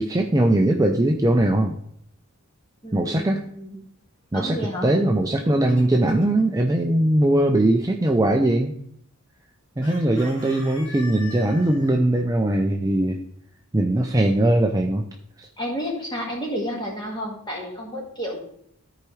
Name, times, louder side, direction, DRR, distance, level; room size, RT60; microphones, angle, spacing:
voice 1, 0.0-1.8 2.9-3.4 4.3-8.7 9.8-13.2 13.7-15.0 15.4-15.5, right 1 dB, 15° right, 2 dB, 0.4 m, -20 dB
voice 2, 2.8-3.9 4.3-4.9 15.6-18.4, equal, 20° left, -1 dB, 1.7 m, -31 dB
Chicken rooster, 5.2-6.4 9.8-11.9, left 2 dB, 55° left, 1.8 m, -42 dB
13.5 x 4.8 x 3.2 m, 0.68 s
head